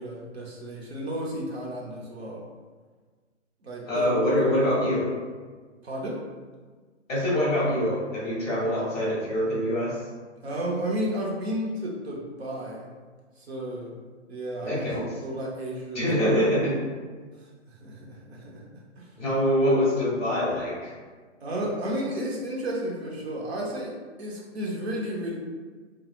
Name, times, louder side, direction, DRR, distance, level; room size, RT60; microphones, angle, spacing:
voice 1, 0.0-2.4 3.6-4.8 5.8-6.2 10.4-12.9 13.4-14.0 14.3-14.8 15.2-16.1 17.7-19.1 21.4-23.9 24.2-25.4, right 1 dB, 55° right, -3 dB, 0.8 m, -32 dB
voice 2, 3.9-5.1 7.1-10.0 14.6-15.0 15.9-16.7 19.2-20.9, equal, 5° left, -17 dB, 0.6 m, -24 dB
3.0 x 2.3 x 2.4 m, 1.4 s
hypercardioid pair, 175°, 37 cm